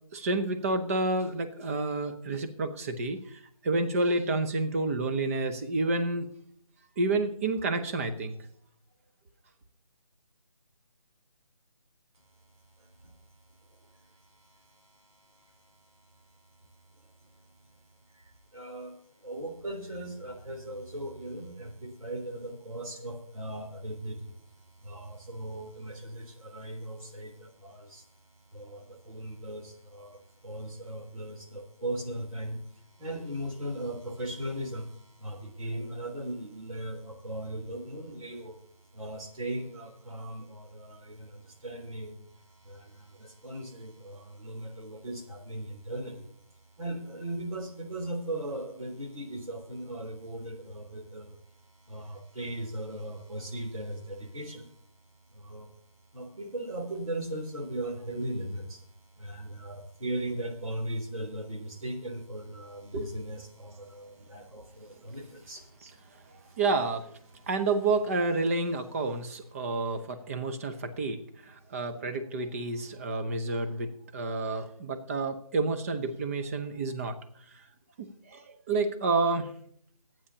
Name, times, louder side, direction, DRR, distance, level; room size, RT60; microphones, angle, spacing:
voice 1, 0.1-6.3 7.0-8.4 62.9-63.1 65.8-65.9 66.6-67.1 67.5-77.2 78.0-79.5, right 3 dB, 25° right, 8 dB, 0.9 m, -29 dB
voice 2, 14.5-14.9 15.4-15.5 18.1-18.2 18.5-18.9 19.2-24.3 24.8-28.0 28.5-38.6 38.9-46.2 46.8-51.4 51.9-54.7 55.3-55.7 56.1-58.8 59.2-65.6 66.5-66.6, right 1 dB, 65° right, 3 dB, 3.4 m, -38 dB
22.0 x 9.1 x 2.9 m, 0.65 s
figure-of-eight pair, 155°, 19 cm